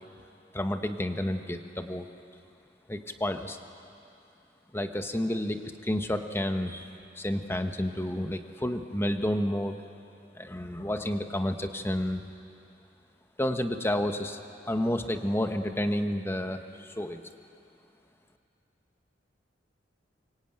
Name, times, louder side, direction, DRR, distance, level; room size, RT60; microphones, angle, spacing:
voice 1, 0.5-2.1 2.9-3.6 4.7-6.9 7.2-9.8 10.3-12.2 13.4-14.4 14.7-16.6 17.0-17.2, left 1 dB, 15° left, 7 dB, 1.1 m, -30 dB
24.0 x 23.0 x 9.0 m, 2.7 s
head